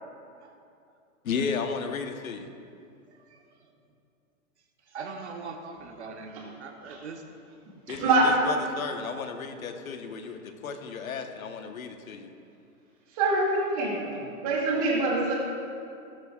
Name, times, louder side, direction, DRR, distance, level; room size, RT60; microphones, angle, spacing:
voice 1, 1.2-2.5 7.9-12.3, left 5 dB, 70° left, 6 dB, 1.2 m, -34 dB
voice 2, 4.9-7.2, right 4 dB, 50° right, 3 dB, 1.0 m, -40 dB
voice 3, 7.9-8.3 13.1-14.2 14.4-15.3, right 2 dB, 25° right, -4 dB, 2.2 m, -25 dB
17.0 x 13.0 x 2.4 m, 2.5 s
hypercardioid pair, 180°, 43 cm